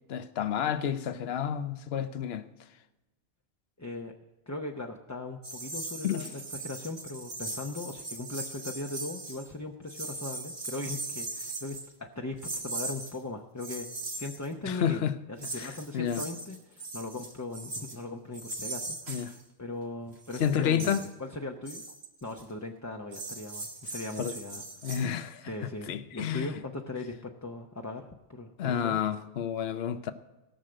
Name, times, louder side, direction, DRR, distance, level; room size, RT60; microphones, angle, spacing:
voice 1, 0.1-2.5 6.0-6.3 14.7-15.1 15.6-16.2 19.1-19.3 20.4-21.0 24.2-24.3 24.8-25.5 25.9-26.5 28.6-30.1, left 9 dB, 75° left, 0.9 m, -30 dB
voice 2, 3.8-4.1 4.5-13.9 14.2-15.0 15.3-21.8 22.2-24.9 25.4-29.0, left 2 dB, 20° left, 0.7 m, -39 dB
sound 1, 5.4-9.5 9.9-11.9 12.4-13.1 13.6-14.5 15.4-18.0 18.3-19.4 20.1-21.1 21.7-22.4 23.1-25.0, right 2 dB, 90° right, 2.0 m, -39 dB
18.0 x 6.5 x 7.7 m
omnidirectional pair, 1.1 m